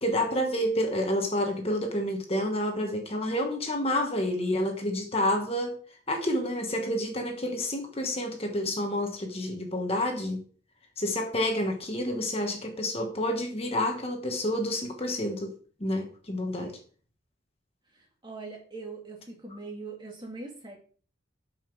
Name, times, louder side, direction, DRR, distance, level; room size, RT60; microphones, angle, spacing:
voice 1, 0.0-5.8 6.1-10.4 11.0-15.5 15.8-16.8, left 1 dB, 30° left, 1.3 m, -29 dB
voice 2, 17.9-20.8, right 3 dB, 20° right, 2.2 m, -42 dB
8.3 x 5.7 x 6.1 m
head